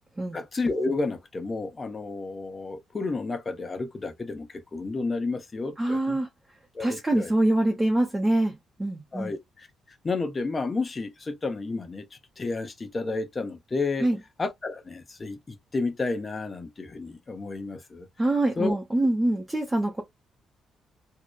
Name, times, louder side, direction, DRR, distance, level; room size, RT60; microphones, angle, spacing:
voice 1, 0.3-6.2 6.7-7.3 9.1-9.7 10.0-12.1 12.4-14.1 14.4-18.1 18.6-18.8, left 3 dB, 30° left, 0.7 m, -31 dB
voice 2, 5.8-6.3 6.8-9.3 14.0-14.2 18.2-20.0, right 1 dB, 15° right, 0.5 m, -25 dB
2.7 x 2.0 x 2.2 m
cardioid pair, 90°, 0 cm